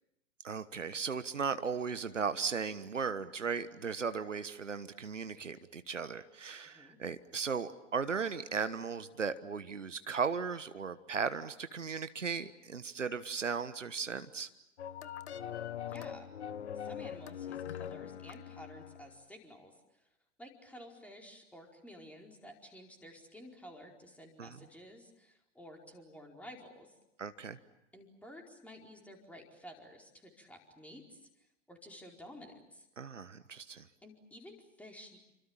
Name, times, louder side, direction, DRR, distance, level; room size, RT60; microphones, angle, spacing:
voice 1, 0.4-14.5 24.4-24.6 27.2-27.6 33.0-33.9, right 5 dB, 80° right, 12 dB, 1.4 m, -36 dB
voice 2, 6.6-7.0 15.9-16.3 16.7-19.7 20.4-26.9 27.9-31.2 31.7-32.9 34.0-35.2, equal, 5° left, 1 dB, 4.7 m, -52 dB
wayside school orchestra, 14.8-19.2, left 9 dB, 65° left, 1.2 m, -42 dB
29.5 x 25.5 x 7.3 m, 0.87 s
figure-of-eight pair, 100°, 37 cm